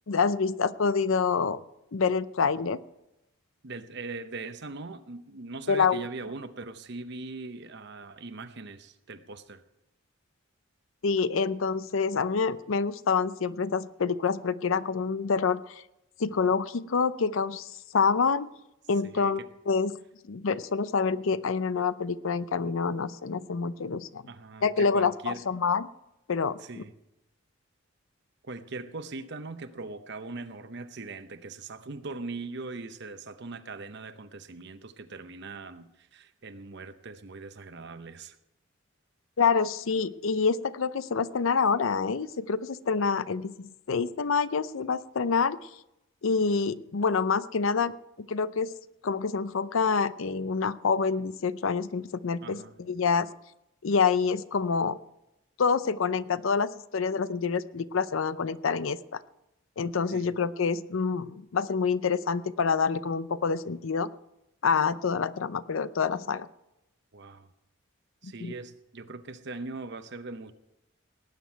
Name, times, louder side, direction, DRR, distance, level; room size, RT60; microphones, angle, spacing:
voice 1, 0.1-1.6 1.9-2.8 5.7-6.0 11.0-15.8 16.2-18.5 18.9-19.4 19.7-20.0 20.3-24.2 24.6-25.9 26.3-26.8 39.4-45.6 46.2-48.7 49.0-52.6 52.9-53.3 53.8-55.0 55.6-59.2 59.8-64.1 64.6-66.5 68.2-68.5, left 5 dB, 70° left, 15 dB, 0.5 m, -27 dB
voice 2, 3.6-9.6 19.0-19.5 24.3-25.4 26.6-26.9 28.4-38.4 52.4-52.7 60.1-60.3 67.1-67.5 68.2-70.5, right 3 dB, 55° right, 10 dB, 0.8 m, -40 dB
18.5 x 9.2 x 4.6 m, 0.89 s
head